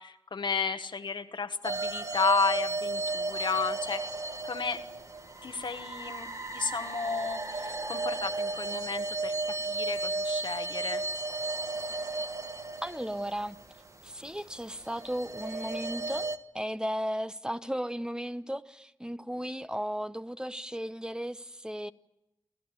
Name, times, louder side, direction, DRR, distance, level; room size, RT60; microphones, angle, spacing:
voice 1, 0.0-4.0 4.4-4.8 5.4-11.0, left 5 dB, 75° left, 1.2 m, -32 dB
sound 1, 1.6-13.8 14.8-16.4, right 3 dB, 40° right, 1.3 m, -34 dB
voice 2, 12.8-13.6 14.0-21.9, equal, 10° right, 0.8 m, -35 dB
28.0 x 13.0 x 9.6 m
cardioid pair, 40°, 8 cm